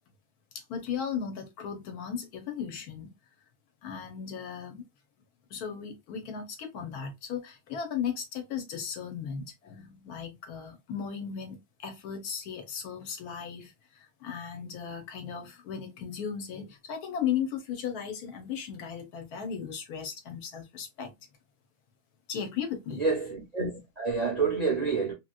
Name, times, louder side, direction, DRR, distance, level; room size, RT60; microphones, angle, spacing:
voice 1, 0.5-3.1 3.8-4.8 5.5-21.1 22.3-23.0, left 7 dB, 75° left, 1.3 m, -36 dB
voice 2, 22.9-25.1, right 4 dB, 55° right, 0.4 m, -28 dB
2.9 x 2.8 x 2.3 m
omnidirectional pair, 1.7 m